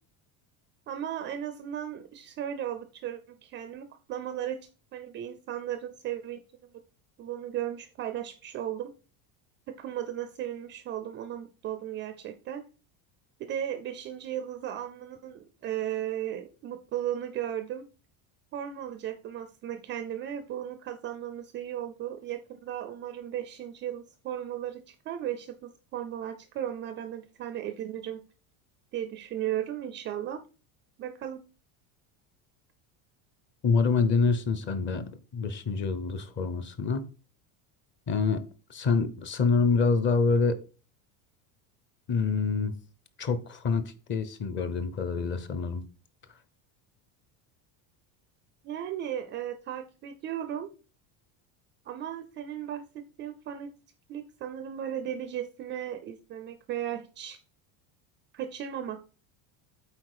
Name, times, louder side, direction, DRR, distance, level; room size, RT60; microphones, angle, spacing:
voice 1, 0.9-4.6 4.9-6.4 7.2-8.9 9.7-12.6 13.4-17.8 18.5-28.2 28.9-30.4 31.0-31.4 48.6-50.7 51.9-53.7 54.1-57.4 58.3-59.0, right 10 dB, 30° right, 0.4 m, -36 dB
voice 2, 33.6-37.0 38.1-40.6 42.1-42.7 43.2-45.8, left 4 dB, 30° left, 0.7 m, -26 dB
8.5 x 4.3 x 4.7 m
cardioid pair, 170°, 42 cm